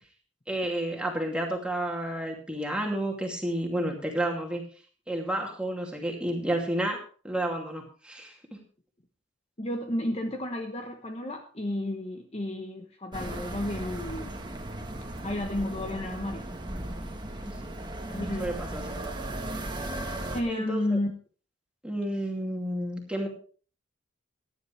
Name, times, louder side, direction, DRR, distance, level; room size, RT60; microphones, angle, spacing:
voice 1, 0.5-4.6 5.1-8.6 17.4-17.5 18.4-19.2 20.5-21.0 21.8-23.3, right 1 dB, 5° right, 0 dB, 2.6 m, -31 dB
voice 2, 9.6-14.3 15.2-16.4 18.1-18.5 20.3-21.1, left 1 dB, 30° left, 4 dB, 1.0 m, -32 dB
sound 1, 13.1-20.4, right 1 dB, 20° right, 1.4 m, -36 dB
16.5 x 10.5 x 3.3 m, 0.39 s
head